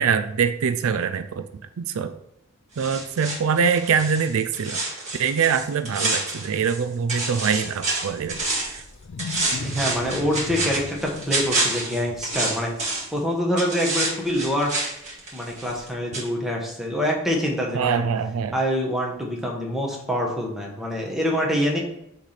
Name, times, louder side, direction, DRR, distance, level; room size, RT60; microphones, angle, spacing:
voice 1, 0.0-1.5 1.8-2.1 2.8-4.8 5.2-8.8 17.7-18.5, right 6 dB, 65° right, 9 dB, 0.4 m, -24 dB
sound 1, 2.8-6.8 7.1-8.8 9.2-13.2 13.6-15.9 16.1-16.3, right 2 dB, 30° right, 2.0 m, -28 dB
Wild animals, 8.1-13.1, left 4 dB, 55° left, 0.4 m, -37 dB
voice 2, 9.6-14.7 15.3-18.1 18.5-21.8, equal, ahead, -1 dB, 1.1 m, -25 dB
6.4 x 3.3 x 5.7 m, 0.76 s
head